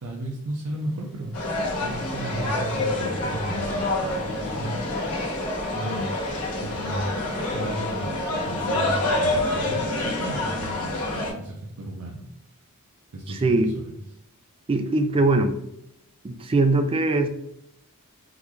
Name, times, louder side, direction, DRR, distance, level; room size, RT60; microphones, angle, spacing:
voice 1, 0.0-1.3 1.8-4.8 5.7-6.1 6.6-12.2 13.1-14.0, right 1 dB, 75° right, 0 dB, 0.5 m, -34 dB
sound 1, 0.6-8.0, right 1 dB, ahead, 0.7 m, -47 dB
sound 2, 1.3-11.3, left 2 dB, 90° left, 1.1 m, -27 dB
voice 2, 13.3-13.8 14.7-15.5 16.2-17.3, right 2 dB, 25° right, 7 dB, 0.3 m, -21 dB
3.8 x 2.2 x 3.0 m, 0.78 s
head